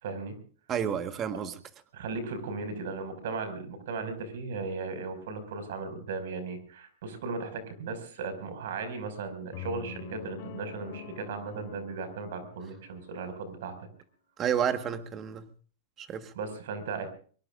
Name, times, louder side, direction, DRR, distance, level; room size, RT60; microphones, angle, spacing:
voice 1, 0.0-0.4 1.9-13.7 16.3-17.1, right 4 dB, 70° right, 9 dB, 5.8 m, -36 dB
voice 2, 0.7-1.5 14.4-15.5 16.0-16.3, right 8 dB, 20° right, 9 dB, 1.5 m, -30 dB
sound 1, 9.5-13.7, left 7 dB, 40° left, 4.4 m, -45 dB
23.5 x 22.5 x 2.5 m, 0.43 s
supercardioid pair, 160°, 0 cm